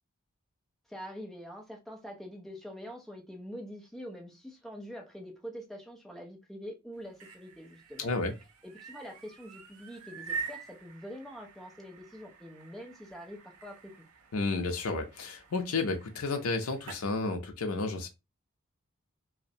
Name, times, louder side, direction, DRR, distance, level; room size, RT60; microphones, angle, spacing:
voice 1, 0.9-8.2 8.6-13.9, equal, ahead, 0.4 m, -45 dB
sound 1, 6.9-17.1, right 5 dB, 85° right, 0.5 m, -46 dB
voice 2, 8.0-8.3 14.3-18.1, left 3 dB, 85° left, 0.5 m, -31 dB
2.4 x 2.0 x 2.6 m
head